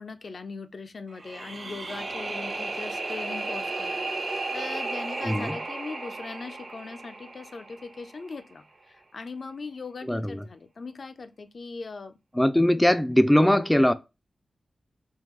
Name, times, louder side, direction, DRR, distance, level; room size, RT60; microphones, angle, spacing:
voice 1, 0.0-4.0 4.3-12.1 12.7-12.9, left 4 dB, 65° left, 0.5 m, -40 dB
sound 1, 1.1-8.2, right 3 dB, 55° right, 0.9 m, -34 dB
voice 2, 5.2-5.6 10.1-10.4 12.4-13.9, left 1 dB, 10° left, 0.4 m, -21 dB
3.7 x 2.8 x 3.1 m
cardioid pair, 50°, 0 cm